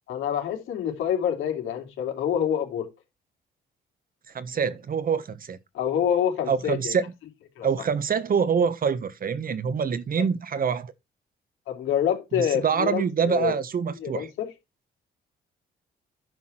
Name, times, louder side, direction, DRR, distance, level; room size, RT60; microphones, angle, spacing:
voice 1, 0.1-2.9 5.7-7.0 7.6-7.7 11.7-13.5 14.0-14.5, left 9 dB, 85° left, 3.4 m, -26 dB
voice 2, 4.3-5.6 6.5-7.0 7.6-10.9 12.3-14.3, right 6 dB, 45° right, 1.3 m, -25 dB
10.5 x 5.9 x 4.4 m
cardioid pair, 90°, 20 cm